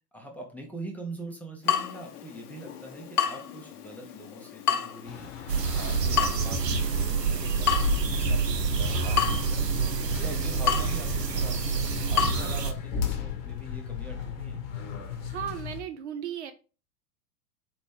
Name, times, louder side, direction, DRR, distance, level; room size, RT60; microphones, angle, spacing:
voice 1, 0.1-8.4 8.8-11.8 12.1-14.6, right 1 dB, 5° left, 0 dB, 0.6 m, -43 dB
Water tap faucet / Drip, 1.6-12.3, left 8 dB, 70° left, 0.7 m, -32 dB
sound 1, 5.0-15.8, left 8 dB, 40° left, 0.9 m, -36 dB
sound 2, 5.5-12.7, right 5 dB, 85° right, 0.6 m, -27 dB
voice 2, 15.3-16.5, right 9 dB, 45° right, 9 dB, 0.5 m, -35 dB
4.1 x 3.0 x 3.4 m, 0.34 s
figure-of-eight pair, 90°, 48 cm